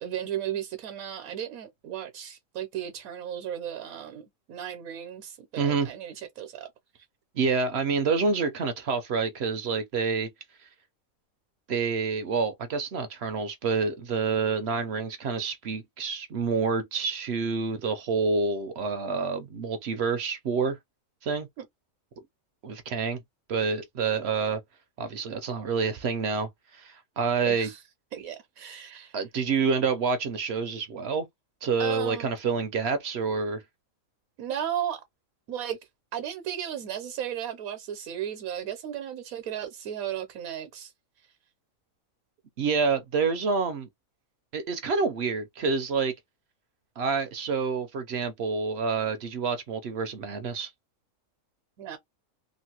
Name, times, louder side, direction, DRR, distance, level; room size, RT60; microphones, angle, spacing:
voice 1, 0.0-6.7 21.6-21.7 27.4-27.8 28.1-29.2 31.8-32.3 34.4-35.0 35.5-35.8 36.1-40.9 51.8-52.0, right 10 dB, 80° right, 1.1 m, -35 dB
voice 2, 5.6-5.9 7.4-10.3 11.7-20.8 21.2-21.5 22.6-23.2 23.5-24.6 25.0-27.7 29.1-31.3 31.6-33.6 42.6-43.9 44.5-46.1 47.0-50.7, right 5 dB, 65° right, 0.7 m, -28 dB
3.0 x 2.5 x 2.8 m
omnidirectional pair, 1.4 m